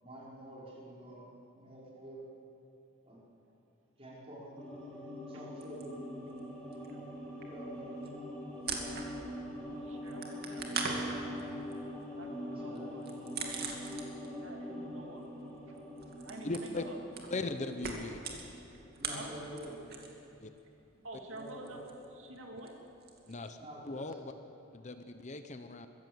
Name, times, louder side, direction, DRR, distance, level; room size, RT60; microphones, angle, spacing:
voice 1, 0.0-1.3 1.6-2.2 3.1-3.2 4.0-4.6 5.3-5.9 7.5-8.0 8.8-9.1 9.5-9.6 12.5-12.9 19.0-20.1 21.3-21.8 23.5-24.2, equal, 30° right, -5 dB, 4.7 m, -48 dB
sound 1, 4.6-19.1 19.4-19.5, equal, 5° left, 3.1 m, -43 dB
sound 2, 5.6-6.5 6.7-9.5 9.7-14.4 14.7-20.3 20.5-23.5, right 4 dB, 50° right, 2.5 m, -42 dB
voice 2, 9.8-11.4 12.2-13.1 14.4-15.2 15.7-15.8 16.2-17.0 18.2-18.4 19.1-19.5 21.0-21.9 22.1-22.7, right 2 dB, 70° right, 2 dB, 2.3 m, -49 dB
voice 3, 16.4-16.8 17.3-18.2 20.4-20.5 23.3-23.6 23.8-24.3 24.7-25.9, left 2 dB, 35° left, 8 dB, 0.8 m, -38 dB
22.5 x 15.5 x 7.8 m, 2.8 s
head